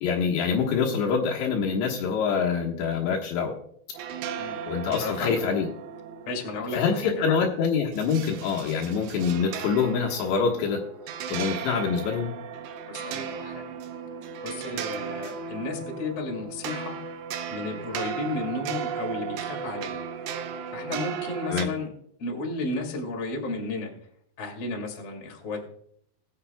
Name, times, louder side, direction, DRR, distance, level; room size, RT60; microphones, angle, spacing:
voice 1, 0.0-3.6 4.7-5.7 6.7-10.8 11.3-12.3 21.5-21.7, left 6 dB, 75° left, -1 dB, 3.5 m, -25 dB
sound 1, 3.9-21.7, right 7 dB, 80° right, 2.8 m, -36 dB
voice 2, 5.0-5.4 6.3-7.4 12.9-13.7 14.4-17.0 17.5-20.0 20.7-21.9 22.2-23.9 24.4-25.7, left 3 dB, 40° left, 1 dB, 2.4 m, -33 dB
21.5 x 7.5 x 2.2 m, 0.67 s
omnidirectional pair, 5.2 m